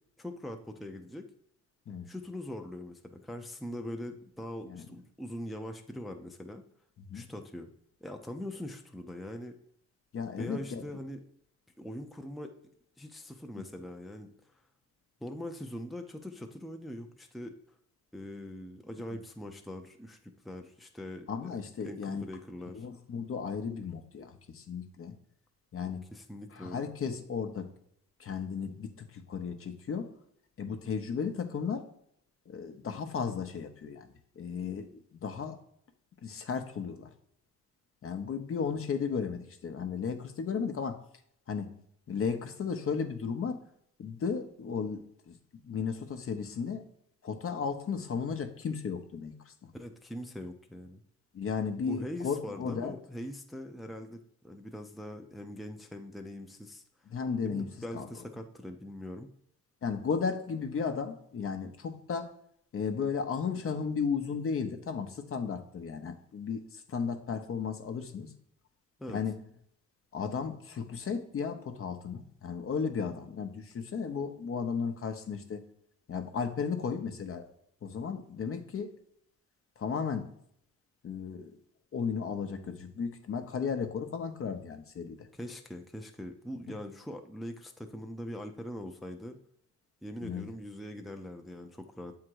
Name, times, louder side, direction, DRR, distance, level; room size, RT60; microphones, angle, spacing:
voice 1, 0.2-1.3 2.1-6.6 7.1-7.7 8.0-9.5 10.4-11.2 11.8-12.5 13.0-14.3 15.2-17.6 18.1-21.5 21.8-22.9 26.1-26.9 49.7-51.0 51.9-56.8 57.4-59.3 69.0-69.2 85.3-89.4 90.0-92.2, left 1 dB, ahead, 4 dB, 0.6 m, -42 dB
voice 2, 10.1-10.9 13.5-13.6 21.3-22.2 22.7-25.1 25.7-26.0 26.5-27.7 28.2-30.1 30.6-31.9 32.5-34.1 34.4-35.6 36.2-37.1 38.0-41.0 41.5-41.7 42.1-43.6 44.0-46.8 47.2-49.7 51.3-53.0 57.1-58.1 59.8-62.3 62.7-68.3 69.1-69.4 70.1-75.6 76.1-77.5 77.8-78.9 79.8-80.3 81.0-81.6 81.9-85.3 86.7-86.8 90.2-90.5, left 6 dB, 45° left, 6 dB, 0.8 m, -35 dB
7.5 x 3.7 x 4.7 m, 0.70 s
cardioid pair, 90°, 30 cm